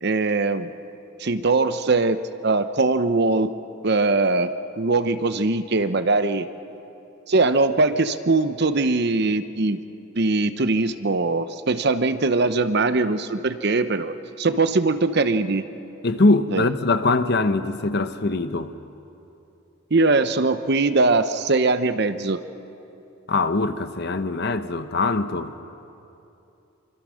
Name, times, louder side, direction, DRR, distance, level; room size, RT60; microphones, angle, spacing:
voice 1, 0.0-0.7 1.2-3.5 3.8-4.5 4.8-6.5 7.3-9.8 10.2-15.6 16.5-16.6 19.9-22.4, right 3 dB, 50° right, 0.8 m, -21 dB
voice 2, 16.0-18.7 23.3-25.6, left 3 dB, 50° left, 0.9 m, -22 dB
25.5 x 25.5 x 6.4 m
head